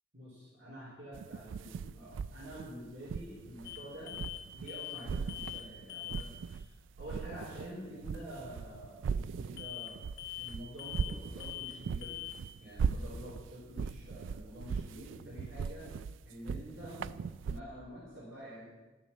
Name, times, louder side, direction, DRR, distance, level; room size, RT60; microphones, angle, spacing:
voice 1, 0.1-4.1 4.5-6.7 7.0-10.0 10.3-12.1 12.6-15.9 16.2-17.1 17.4-18.6, equal, 65° right, -7 dB, 3.8 m, -47 dB
sound 1, 1.1-4.8 5.1-6.7 7.0-17.6, right 6 dB, 90° right, 0.3 m, -39 dB
sound 2, 3.6-3.8 4.1-4.4 4.7-5.0 5.3-5.6 5.9-6.2 9.6-9.9 10.2-10.5 10.8-11.1 11.4-11.7 12.0-12.3, left 15 dB, 65° left, 2.1 m, -42 dB
12.0 x 7.2 x 7.4 m, 1.2 s
head